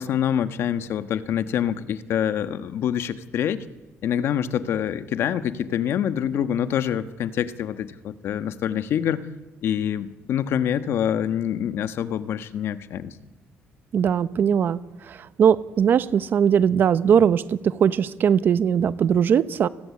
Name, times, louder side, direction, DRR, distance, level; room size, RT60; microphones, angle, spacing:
voice 1, 0.0-3.6 4.0-9.2 9.6-13.2, left 9 dB, 65° left, 11 dB, 1.4 m, -26 dB
voice 2, 13.9-14.8 15.1-19.7, right 8 dB, 50° right, 14 dB, 1.0 m, -20 dB
29.5 x 20.0 x 8.6 m, 1.1 s
cardioid pair, 135°, 4 cm